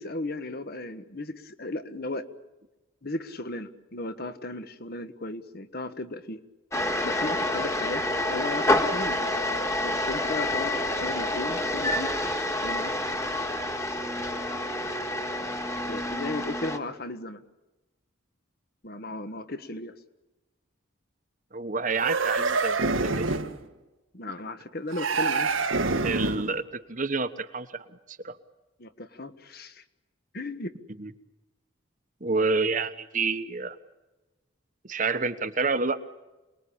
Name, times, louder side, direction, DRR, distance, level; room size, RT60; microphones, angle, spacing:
voice 1, 0.0-2.3 3.0-6.4 7.0-9.2 9.8-10.7 11.0-12.2 12.6-13.0 15.9-17.4 18.8-19.9 24.1-25.5 28.8-29.8 30.3-30.7, left 2 dB, 50° left, 11 dB, 1.5 m, -35 dB
sound 1, 6.7-16.8, left 1 dB, 15° left, 1.8 m, -28 dB
voice 2, 21.5-23.4 26.0-28.3 31.0-31.1 32.2-33.8 34.8-36.0, right 4 dB, 40° right, 11 dB, 1.2 m, -29 dB
sound 2, 21.9-23.6 24.9-26.5, right 3 dB, 85° right, 1.7 m, -26 dB
27.5 x 20.5 x 8.7 m, 1.1 s
head